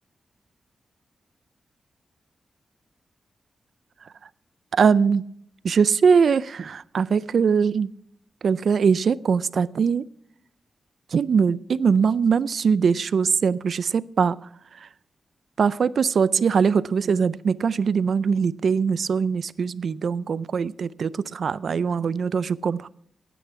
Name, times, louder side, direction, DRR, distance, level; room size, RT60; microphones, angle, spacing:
voice 1, 4.7-5.2 5.6-7.9 8.4-10.0 11.1-14.4 15.6-22.9, right 6 dB, 65° right, 17 dB, 0.4 m, -21 dB
15.5 x 9.2 x 4.7 m, 0.71 s
wide cardioid pair, 120°, 0 cm